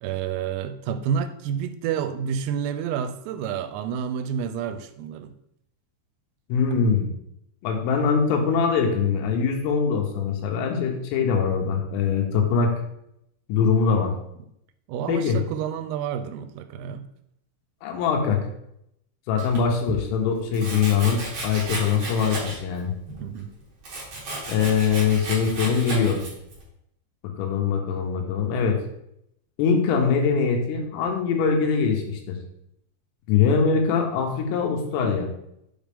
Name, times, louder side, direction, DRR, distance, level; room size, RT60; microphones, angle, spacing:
voice 1, 0.0-5.3 14.9-17.1 23.2-23.5, right 8 dB, 90° right, 10 dB, 3.2 m, -29 dB
voice 2, 6.5-7.1 7.6-12.7 13.5-14.1 15.1-15.4 17.8-18.5 19.3-22.9 24.5-26.2 27.2-28.8 29.6-32.4 33.3-35.3, left 6 dB, 85° left, 2 dB, 3.6 m, -22 dB
Domestic sounds home sounds, 19.4-20.0 20.5-22.8 23.1-26.6, right 2 dB, 45° right, 2.7 m, -34 dB
7.9 x 5.1 x 3.5 m, 0.78 s
omnidirectional pair, 5.8 m